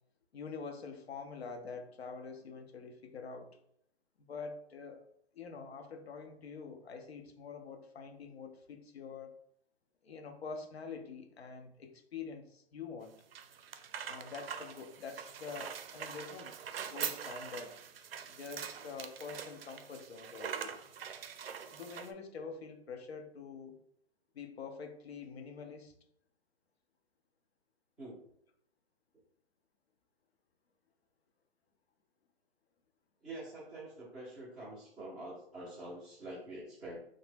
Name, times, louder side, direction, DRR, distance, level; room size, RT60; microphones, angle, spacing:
voice 1, 0.3-3.6 4.2-5.1 5.3-9.3 10.0-13.2 14.1-16.6 16.9-17.7 18.4-20.8 21.7-23.8 24.3-25.9, left 5 dB, 80° left, 5 dB, 0.7 m, -46 dB
sound 1, 13.0-22.1, right 7 dB, 65° right, 0.5 m, -43 dB
voice 2, 33.2-37.0, right 1 dB, ahead, -9 dB, 0.4 m, -46 dB
2.8 x 2.1 x 3.3 m, 0.73 s
hypercardioid pair, 140°, 31 cm